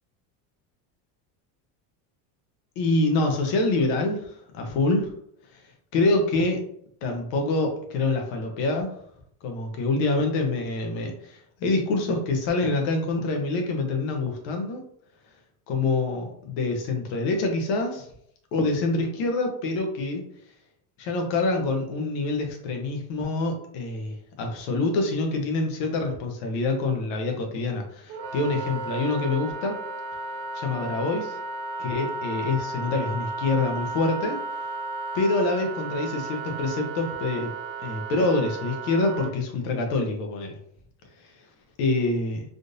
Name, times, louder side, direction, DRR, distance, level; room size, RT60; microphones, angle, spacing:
voice 1, 2.8-5.1 5.9-6.6 7.0-8.9 9.4-14.8 15.7-18.1 18.5-20.2 21.0-29.8 30.5-31.4 31.8-34.4 35.1-37.5 37.8-40.6 41.8-42.4, left 2 dB, 65° left, 3 dB, 0.9 m, -26 dB
Wind instrument woodwind instrument, 28.1-39.3, right 3 dB, 45° right, 0.5 m, -34 dB
3.7 x 2.5 x 2.5 m, 0.67 s
supercardioid pair, 130°, 47 cm